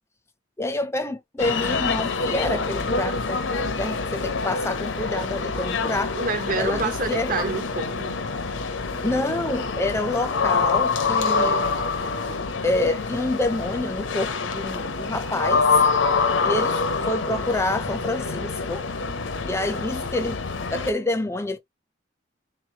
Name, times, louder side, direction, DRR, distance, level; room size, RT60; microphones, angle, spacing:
voice 1, 0.6-3.4 3.8-6.2 6.6-7.3 8.9-11.7 12.6-15.8 16.4-16.8 17.1-18.9 19.4-20.4 20.7-21.6, left 2 dB, 15° left, 0.4 m, -27 dB
sound 1, 1.4-20.9, left 4 dB, 85° left, 0.7 m, -26 dB
voice 2, 6.1-8.2, right 4 dB, 45° right, 0.6 m, -28 dB
3.7 x 3.1 x 2.7 m
head